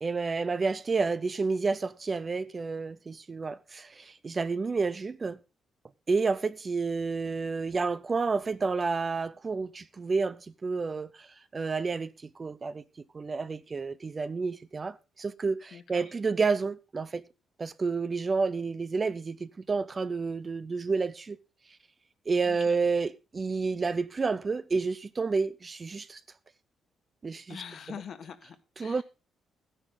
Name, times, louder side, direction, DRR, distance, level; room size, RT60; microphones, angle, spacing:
voice 1, 0.0-5.4 6.1-11.3 11.5-12.8 13.1-17.2 17.6-21.4 22.3-26.2 27.2-27.6 28.8-29.0, right 4 dB, 30° right, 0.6 m, -30 dB
voice 2, 15.7-16.1 22.5-22.8 27.5-29.0, left 7 dB, 55° left, 1.6 m, -44 dB
14.0 x 10.0 x 3.9 m
cardioid pair, 130°, 0 cm